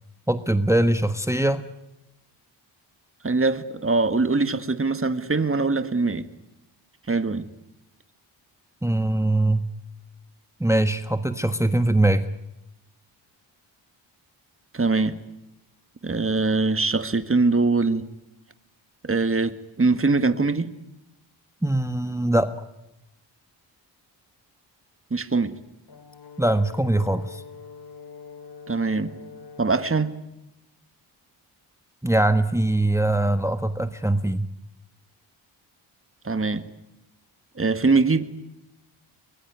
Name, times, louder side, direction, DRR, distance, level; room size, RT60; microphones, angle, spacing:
voice 1, 0.3-1.6 8.8-9.7 10.6-12.3 21.6-22.5 26.4-27.4 32.0-34.5, right 1 dB, 5° right, 1.4 m, -22 dB
voice 2, 3.2-6.3 7.1-7.5 14.7-15.2 16.0-18.1 19.0-20.7 25.1-25.6 28.7-29.1 29.6-30.1 36.2-36.6 37.6-38.3, right 3 dB, 25° right, 1.9 m, -22 dB
Brass instrument, 25.9-30.0, left 5 dB, 50° left, 2.8 m, -44 dB
23.5 x 21.0 x 9.6 m
cardioid pair, 50°, 49 cm